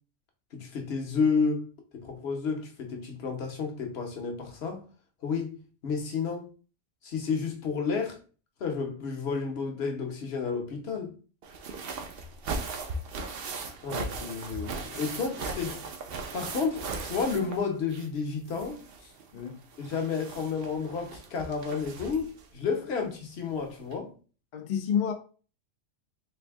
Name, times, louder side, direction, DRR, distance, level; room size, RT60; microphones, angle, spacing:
voice 1, 0.5-1.7 1.9-4.8 5.2-6.5 7.0-8.2 8.6-11.1 13.8-15.8 16.3-19.1 19.8-24.1, left 5 dB, 55° left, 0.9 m, -31 dB
sound 1, 11.4-18.2 18.5-22.4 23.5-23.6 23.9-24.0, right 3 dB, 60° right, 0.6 m, -38 dB
voice 2, 24.5-25.1, left 8 dB, 70° left, 0.4 m, -29 dB
3.3 x 2.6 x 3.4 m
omnidirectional pair, 1.4 m